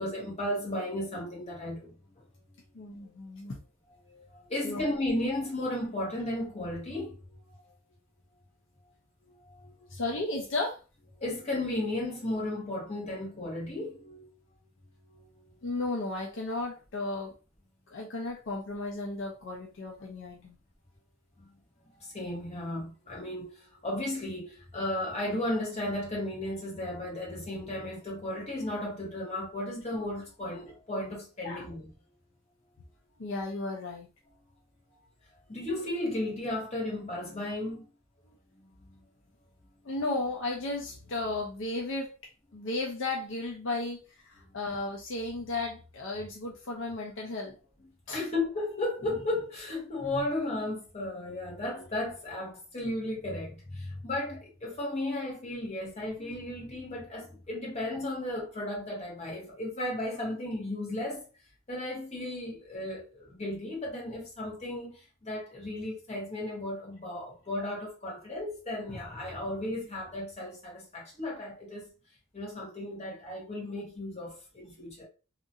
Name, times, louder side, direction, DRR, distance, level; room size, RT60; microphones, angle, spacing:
voice 1, 0.0-1.9 4.0-7.2 7.7-7.8 9.2-9.9 11.2-14.3 15.1-15.6 21.4-21.6 21.9-31.9 35.5-37.9 38.5-39.0 44.4-44.6 48.1-61.2 61.7-71.9 72.3-75.0, left 1 dB, 35° left, 1.2 m, -35 dB
voice 2, 2.7-3.6 4.6-4.8 9.9-10.8 15.6-17.3 17.9-20.6 31.4-31.7 33.2-34.1 39.8-42.2 42.5-47.6 48.1-48.3, left 2 dB, 65° left, 0.5 m, -34 dB
2.8 x 2.4 x 2.7 m
head